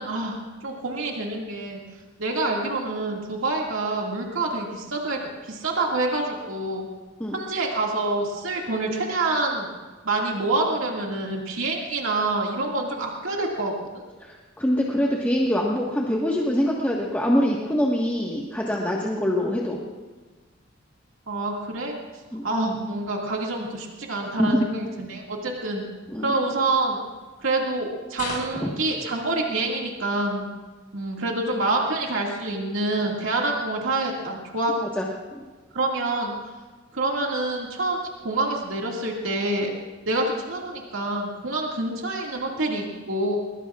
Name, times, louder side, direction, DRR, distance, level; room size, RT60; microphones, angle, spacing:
voice 1, 0.0-1.8 2.2-6.9 7.3-9.7 10.0-14.0 21.3-21.9 22.4-25.8 26.2-27.0 27.4-30.5 30.9-34.7 35.7-36.5 36.9-39.7 40.1-43.4, right 2 dB, 90° right, -1 dB, 2.2 m, -27 dB
voice 2, 14.2-19.8 22.3-22.4 24.4-24.6 26.1-26.3 28.6-28.7 34.9-35.1 35.3-35.4, equal, 10° left, -4 dB, 1.5 m, -24 dB
sound 1, 28.1-28.8 31.9-32.0, left 3 dB, 40° left, 4.9 m, -34 dB
22.0 x 22.0 x 2.5 m, 1.3 s
head